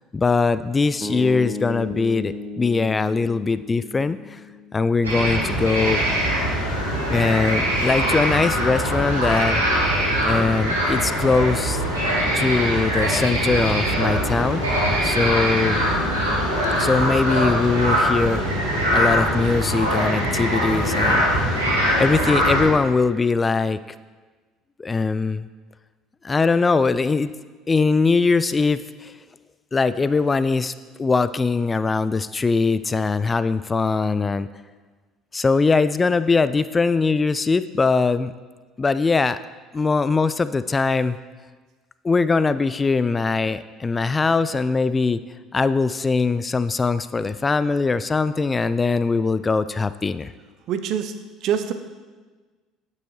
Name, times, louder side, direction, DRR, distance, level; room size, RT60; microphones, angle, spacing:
voice 1, 0.1-4.4 4.7-6.0 7.1-9.6 10.2-11.8 12.3-15.8 16.7-18.4 18.9-21.5 22.0-23.8 24.8-25.5 26.2-27.3 27.7-29.1 29.7-30.7 31.0-34.5 35.3-38.3 38.8-39.4 39.7-41.2 42.0-45.2 45.5-50.3, left 4 dB, 25° left, 14 dB, 0.3 m, -21 dB
sound 1, 1.0-5.2, left 3 dB, 15° right, 1.1 m, -34 dB
sound 2, 5.0-22.6, equal, 90° right, 2.4 m, -22 dB
voice 2, 50.7-51.1 51.4-51.7, right 9 dB, 55° right, 9 dB, 0.6 m, -24 dB
9.0 x 8.5 x 3.1 m, 1.4 s
figure-of-eight pair, 60°, 0 cm